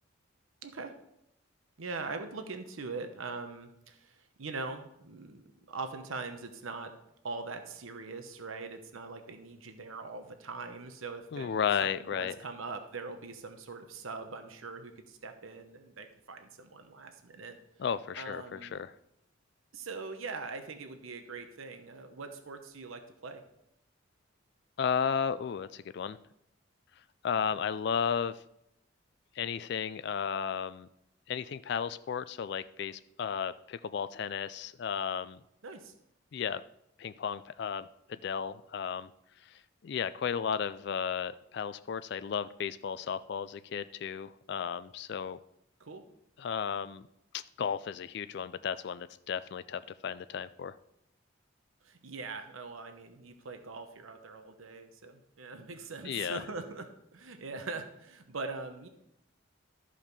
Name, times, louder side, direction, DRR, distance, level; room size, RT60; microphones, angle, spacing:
voice 1, 0.6-0.9 1.8-6.9 7.2-11.5 11.8-17.6 18.2-18.8 19.7-23.4 35.6-35.9 45.8-46.0 51.8-58.9, right 3 dB, 80° right, 7 dB, 1.0 m, -42 dB
voice 2, 11.3-12.3 17.8-18.9 24.8-26.2 27.2-28.4 29.4-30.9 31.3-35.4 36.3-36.6 37.0-39.1 39.5-45.4 46.4-47.1 47.3-50.7 56.0-56.4, left 7 dB, 55° left, 14 dB, 0.3 m, -34 dB
13.5 x 5.0 x 5.4 m, 0.78 s
head